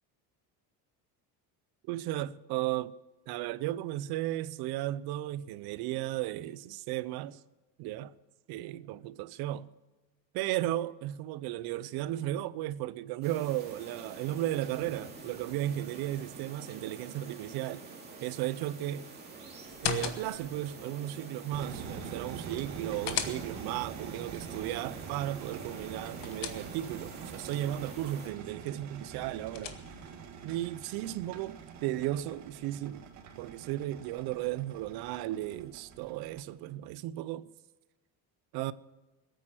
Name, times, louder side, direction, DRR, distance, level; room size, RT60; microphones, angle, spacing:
voice 1, 1.9-2.9 3.3-7.4 7.8-8.1 8.5-9.7 10.3-17.8 18.2-19.1 19.8-29.8 30.4-33.1 33.4-37.5 38.5-38.7, right 14 dB, 75° right, 0.7 m, -35 dB
sound 1, 13.2-28.3, right 4 dB, 25° right, 2.7 m, -47 dB
sound 2, 19.6-20.6 22.5-23.8 25.8-27.1 29.0-30.2, left 10 dB, 60° left, 1.3 m, -38 dB
sound 3, 21.5-36.4, right 6 dB, 45° right, 1.8 m, -45 dB
20.5 x 9.3 x 6.2 m
cardioid pair, 170°, 38 cm